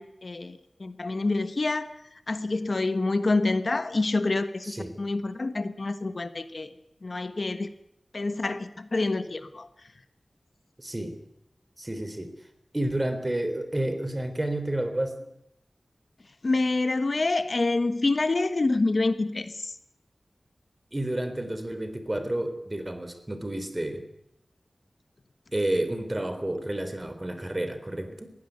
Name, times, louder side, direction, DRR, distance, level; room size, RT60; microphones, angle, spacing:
voice 1, 0.0-1.9 2.3-6.7 7.0-7.7 8.1-9.7 16.4-19.7, left 3 dB, 55° left, 11 dB, 1.3 m, -27 dB
voice 2, 4.6-5.0 10.8-11.2 11.8-12.3 12.7-15.2 20.9-24.1 25.5-28.3, right 1 dB, 25° right, 9 dB, 3.5 m, -30 dB
21.0 x 16.0 x 9.3 m, 0.83 s
wide cardioid pair, 75°, 0 cm